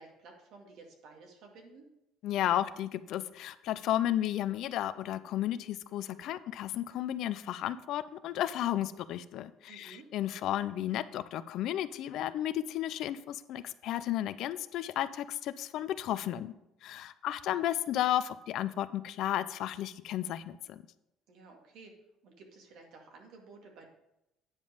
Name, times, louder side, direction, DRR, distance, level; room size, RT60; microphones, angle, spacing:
voice 1, 0.0-1.9 9.7-10.1 21.3-22.0 22.2-23.9, right 3 dB, 70° right, 1 dB, 2.1 m, -53 dB
voice 2, 2.2-16.5 16.8-20.8, left 12 dB, 65° left, 14 dB, 0.5 m, -33 dB
9.7 x 5.3 x 5.1 m, 0.86 s
cardioid pair, 115°, 0 cm